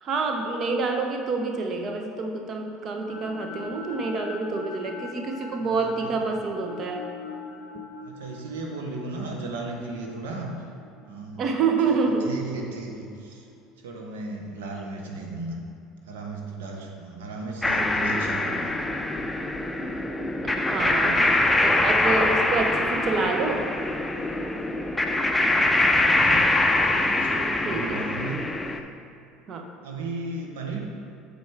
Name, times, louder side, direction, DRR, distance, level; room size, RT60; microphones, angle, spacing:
voice 1, 0.0-7.1 11.4-12.3 20.4-21.3 21.6-23.7 27.6-28.0 29.5-29.7, right 4 dB, 45° right, 4 dB, 0.8 m, -27 dB
sound 1, 2.5-12.7, left 4 dB, 85° left, 0.6 m, -42 dB
voice 2, 5.6-6.1 8.0-10.5 11.0-11.4 11.9-12.0 12.2-13.5 13.8-15.6 16.0-18.7 25.5-26.4 26.9-28.4 29.8-30.8, right 3 dB, 80° right, 0 dB, 1.0 m, -35 dB
sound 2, 17.6-28.8, left 2 dB, 10° left, 0.5 m, -23 dB
6.9 x 4.6 x 4.5 m, 2.6 s
hypercardioid pair, 75°, 0 cm